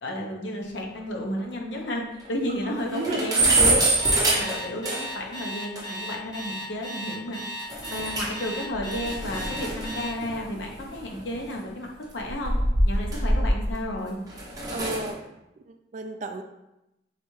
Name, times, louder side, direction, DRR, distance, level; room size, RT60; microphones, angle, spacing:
voice 1, 0.0-3.8 4.2-7.4 7.9-11.9 12.1-12.6 12.8-14.2, left 1 dB, 70° left, 0 dB, 0.8 m, -32 dB
sound 1, 0.9-1.0 1.4-1.5 1.8-1.9 2.3-2.4 2.7-5.3 5.8-5.9 7.7-8.5 8.7-11.4 12.2-13.8 14.3-15.1, right 2 dB, 20° right, 0.7 m, -25 dB
voice 2, 2.9-3.4 14.7-15.2 15.7-16.4, right 2 dB, 40° right, 6 dB, 0.3 m, -33 dB
Alarm, 4.0-10.1, equal, 20° left, 0.8 m, -36 dB
4.0 x 3.3 x 3.1 m, 0.92 s
head